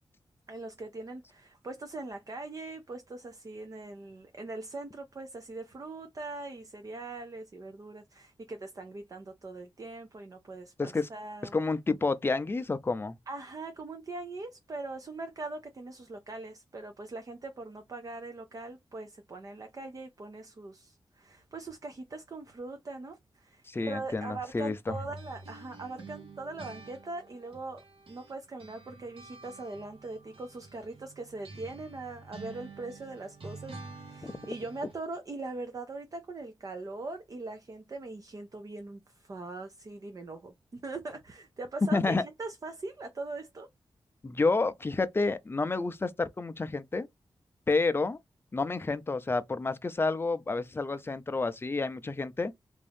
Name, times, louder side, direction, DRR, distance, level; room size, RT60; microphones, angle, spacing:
voice 1, 0.5-11.5 13.3-27.8 28.1-43.7, right 2 dB, 40° right, 0.6 m, -41 dB
voice 2, 10.8-11.1 11.5-13.2 23.7-25.0 34.2-34.3 41.9-42.2 44.2-47.1 47.7-48.2 48.5-52.5, left 3 dB, 25° left, 0.5 m, -29 dB
sound 1, 24.9-28.3 28.6-35.0, right 3 dB, 80° right, 1.4 m, -48 dB
3.5 x 2.6 x 3.4 m
wide cardioid pair, 135°, 9 cm